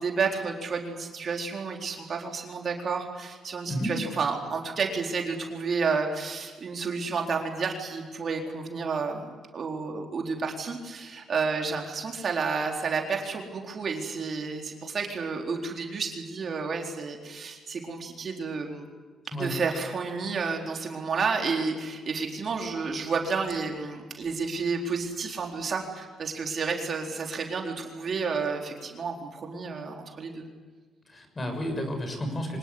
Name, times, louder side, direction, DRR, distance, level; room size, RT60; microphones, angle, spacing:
voice 1, 0.0-18.9 19.4-30.4, right 4 dB, 50° right, 2 dB, 4.2 m, -31 dB
voice 2, 31.1-32.6, equal, 30° left, 6 dB, 6.8 m, -31 dB
25.5 x 19.5 x 9.7 m, 1.4 s
cardioid pair, 90°, 0 cm